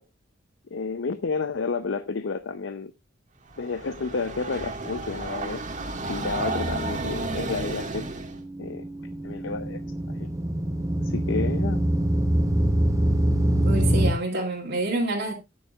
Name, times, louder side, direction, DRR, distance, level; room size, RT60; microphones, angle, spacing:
voice 1, 0.7-2.9 3.6-5.6 6.1-8.1 8.6-8.8 9.2-9.8 10.1-10.3 11.0-11.8, left 4 dB, 65° left, 0.6 m, -30 dB
Train, 3.5-8.4, right 2 dB, 40° right, 1.7 m, -32 dB
sound 1, 8.2-14.1, right 1 dB, 15° right, 0.8 m, -24 dB
voice 2, 13.6-15.3, right 2 dB, 65° right, 2.3 m, -27 dB
13.5 x 9.4 x 2.3 m
head